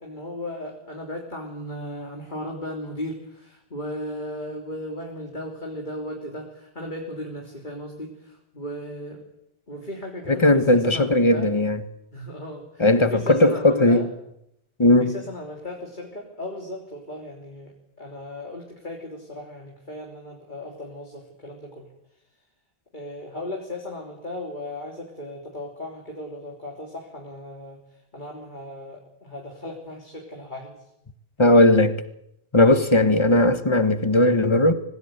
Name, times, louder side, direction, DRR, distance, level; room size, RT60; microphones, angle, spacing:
voice 1, 0.0-9.2 9.7-11.5 12.1-14.1 15.0-21.9 22.9-30.9, left 1 dB, 40° left, 3.6 m, -36 dB
voice 2, 10.3-11.8 12.8-14.1 14.8-15.1 31.4-32.0 32.5-34.7, left 1 dB, 25° left, 1.4 m, -18 dB
24.5 x 19.0 x 9.1 m
omnidirectional pair, 1.2 m